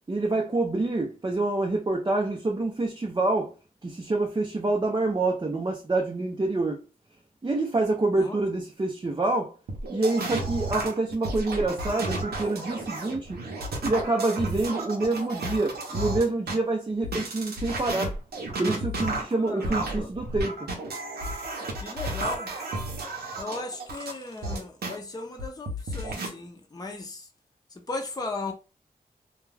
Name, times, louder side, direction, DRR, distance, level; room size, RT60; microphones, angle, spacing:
voice 1, 0.1-3.5 3.8-6.8 7.4-9.5 9.9-13.4 13.8-18.1 18.6-20.5, right 2 dB, 30° right, 0.5 m, -27 dB
sound 1, 9.7-16.6 17.0-24.9 25.4-26.3, right 2 dB, 85° right, 0.7 m, -32 dB
voice 2, 19.4-20.1 21.8-22.5 23.4-27.3 27.7-28.5, left 3 dB, 25° left, 0.7 m, -36 dB
2.3 x 2.2 x 3.2 m
cardioid pair, 50°, 16 cm